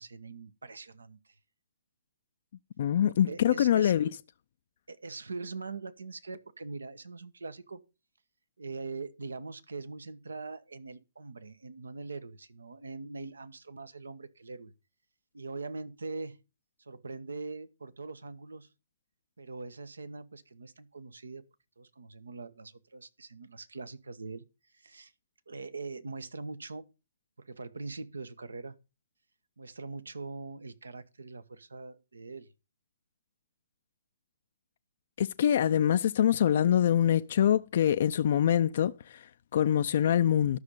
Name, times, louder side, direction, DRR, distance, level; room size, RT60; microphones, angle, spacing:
voice 1, 0.0-1.3 3.3-3.9 4.9-7.8 8.6-14.7 15.3-16.4 16.8-18.7 19.4-21.4 21.8-24.4 24.7-25.1 25.5-26.8 27.4-28.8 29.6-32.5, right 3 dB, 70° right, 1.2 m, -42 dB
voice 2, 2.8-4.1 35.2-40.6, left 10 dB, 45° left, 0.5 m, -25 dB
12.5 x 6.6 x 5.5 m
figure-of-eight pair, 125°, 0 cm